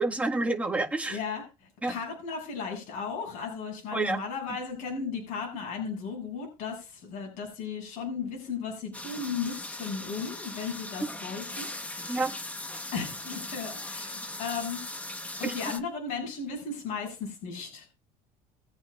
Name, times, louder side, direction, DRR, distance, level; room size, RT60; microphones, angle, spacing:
voice 1, 0.0-1.2 1.8-1.9 3.9-4.2 12.1-12.3 15.4-15.5, right 2 dB, 10° right, 1 dB, 1.7 m, -28 dB
voice 2, 1.1-1.4 1.9-12.2 12.9-14.8 15.4-17.9, left 5 dB, 60° left, 1 dB, 7.3 m, -35 dB
sound 1, 8.9-15.8, left 2 dB, 10° left, 1.2 m, -39 dB
22.5 x 8.7 x 2.5 m, 0.29 s
cardioid pair, 145°, 15 cm